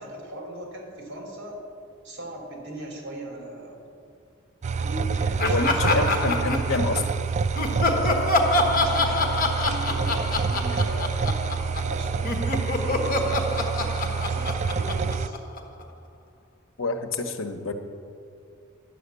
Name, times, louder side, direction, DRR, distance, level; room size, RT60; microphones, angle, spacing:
voice 1, 0.0-1.6 2.0-3.8 4.7-6.8 8.7-12.4 12.8-15.4, right 1 dB, 60° right, 0 dB, 3.2 m, -38 dB
sound 1, 4.6-15.3, right 5 dB, 35° right, 0.4 m, -27 dB
voice 2, 5.4-7.1 16.8-17.7, left 3 dB, 70° left, 7 dB, 1.0 m, -27 dB
Laughter, 5.4-7.1 7.6-12.0 12.2-15.8, left 2 dB, 45° left, 1.2 m, -26 dB
11.5 x 6.4 x 8.2 m, 2.4 s
head